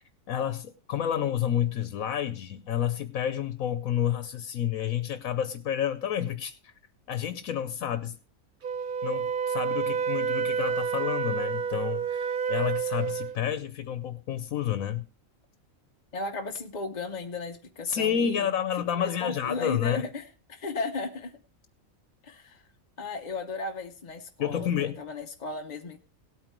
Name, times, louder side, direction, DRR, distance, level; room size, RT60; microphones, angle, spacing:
voice 1, 0.3-6.7 7.1-8.2 9.0-15.0 17.8-20.1 24.4-25.0, left 9 dB, 85° left, 10 dB, 1.2 m, -30 dB
Wind instrument woodwind instrument, 8.6-13.4, right 7 dB, 45° right, 0.8 m, -29 dB
voice 2, 16.1-18.5 18.9-21.4 22.2-22.7 23.0-26.0, left 3 dB, 40° left, 4 dB, 0.7 m, -35 dB
18.0 x 8.9 x 3.1 m, 0.38 s
omnidirectional pair, 1.4 m